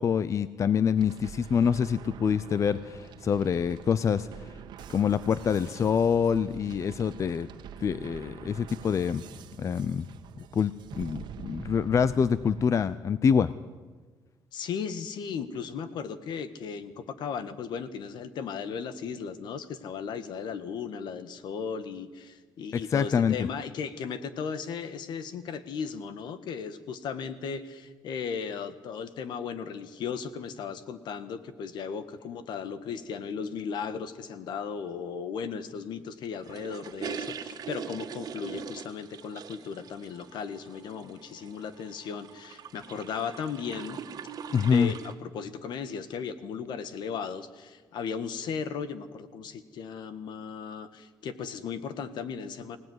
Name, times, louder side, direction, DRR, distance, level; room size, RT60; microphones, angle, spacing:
voice 1, 0.0-4.5 4.9-7.5 7.8-9.2 9.6-10.1 10.5-13.5 22.7-23.4 44.5-44.9, left 7 dB, 40° left, 15 dB, 0.7 m, -26 dB
sound 1, 1.0-12.6, right 8 dB, 75° right, 1.4 m, -45 dB
voice 2, 14.5-44.0 44.5-52.8, left 6 dB, 75° left, 12 dB, 1.7 m, -36 dB
sound 2, 36.4-45.1, right 7 dB, 55° right, 1.9 m, -42 dB
25.0 x 17.5 x 9.6 m, 1.4 s
cardioid pair, 120°, 8 cm